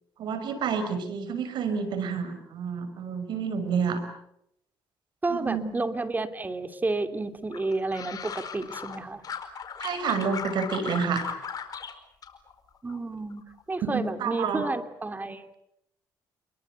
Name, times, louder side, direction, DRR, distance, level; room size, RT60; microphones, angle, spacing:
voice 1, 0.2-4.0 5.3-5.7 9.8-11.3 13.8-14.6, right 6 dB, 70° right, 10 dB, 5.7 m, -29 dB
voice 2, 5.2-9.2 12.8-15.5, right 3 dB, 20° right, 9 dB, 3.0 m, -31 dB
sound 1, 7.5-9.0 9.2-11.9 12.2-13.0 13.3-13.7, left 7 dB, 50° left, 4.6 m, -37 dB
28.5 x 23.0 x 8.2 m, 0.78 s
cardioid pair, 85°, 8 cm